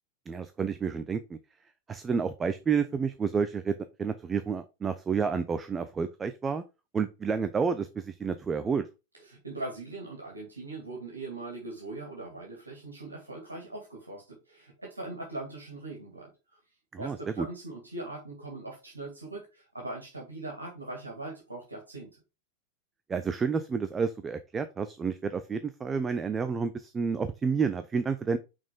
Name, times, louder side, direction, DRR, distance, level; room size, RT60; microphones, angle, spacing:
voice 1, 0.3-1.4 1.9-6.6 6.9-8.9 16.9-17.5 23.1-28.4, right 5 dB, 20° right, 11 dB, 0.5 m, -30 dB
voice 2, 9.2-16.6 17.0-22.2, right 2 dB, 80° right, -2 dB, 2.2 m, -41 dB
5.9 x 4.3 x 5.1 m, 0.28 s
figure-of-eight pair, 90°, 0 cm